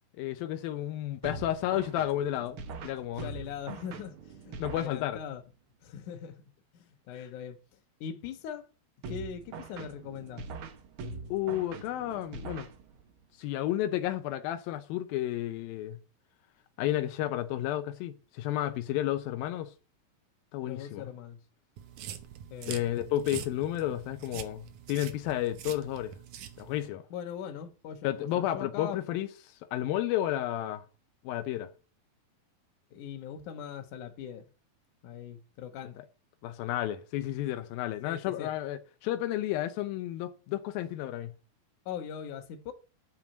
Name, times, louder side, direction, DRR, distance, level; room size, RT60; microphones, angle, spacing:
voice 1, 0.2-2.6 2.8-3.3 4.6-5.2 11.3-12.7 13.4-16.0 16.8-19.7 20.5-21.1 22.7-26.1 26.6-27.0 28.0-30.8 31.2-31.7 36.0-36.1 36.4-41.3, left 13 dB, 85° left, 2.5 m, -32 dB
sound 1, 1.2-5.4 9.0-13.2, right 3 dB, 90° right, 1.1 m, -43 dB
voice 2, 3.2-4.2 4.4-5.4 5.8-6.4 6.7-7.6 8.0-8.7 9.1-10.4 20.7-21.4 22.5-23.1 27.1-29.0 32.9-34.4 35.0-36.0 38.0-38.5 41.9-42.7, left 8 dB, 65° left, 2.5 m, -41 dB
sound 2, 21.8-26.9, right 10 dB, 70° right, 2.2 m, -44 dB
8.8 x 6.0 x 8.2 m
omnidirectional pair, 4.1 m